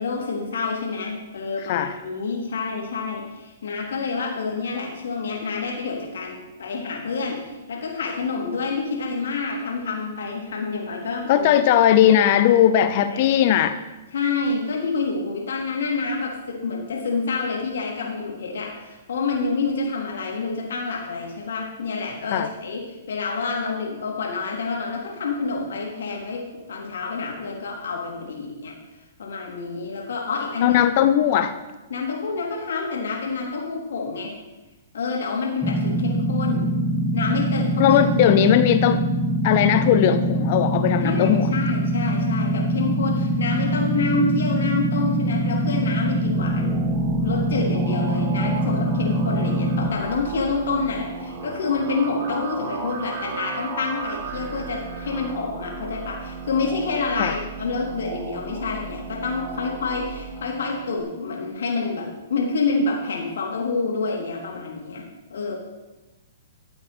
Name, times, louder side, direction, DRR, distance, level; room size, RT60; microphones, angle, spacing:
voice 1, 0.0-11.5 12.5-12.6 13.1-13.4 14.1-28.8 29.2-30.8 31.9-34.3 34.9-36.6 37.1-38.0 41.0-46.7 47.2-65.5, left 4 dB, 75° left, -1 dB, 3.2 m, -28 dB
voice 2, 11.3-13.8 22.3-22.5 30.6-31.5 37.8-39.0 39.4-41.5 57.2-57.3, left 10 dB, 45° left, 11 dB, 0.7 m, -18 dB
sound 1, 35.6-49.9, right 1 dB, ahead, 1.1 m, -23 dB
sound 2, 46.0-61.0, right 6 dB, 35° right, 1.8 m, -35 dB
13.5 x 7.9 x 4.5 m, 1.1 s
hypercardioid pair, 140°, 0 cm